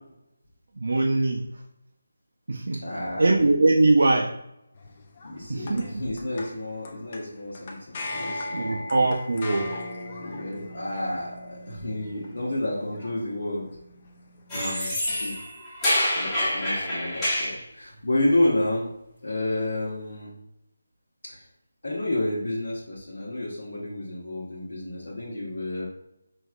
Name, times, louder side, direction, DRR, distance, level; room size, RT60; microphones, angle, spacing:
voice 1, 0.8-1.4 2.5-2.8 3.2-4.3 5.5-5.9 8.5-9.8 14.5-14.8, right 2 dB, 70° right, 2 dB, 0.5 m, -22 dB
voice 2, 2.8-3.3 5.2-8.8 10.2-13.7 14.5-15.3 16.1-18.9 19.2-20.4 21.3-21.5 21.8-25.9, left 1 dB, 85° left, -8 dB, 1.2 m, -30 dB
sound 1, 4.7-14.8, left 2 dB, 30° left, 0.5 m, -39 dB
sound 2, 14.5-17.6, left 1 dB, 10° left, 1.2 m, -27 dB
5.2 x 3.0 x 2.5 m, 0.84 s
figure-of-eight pair, 170°, 0 cm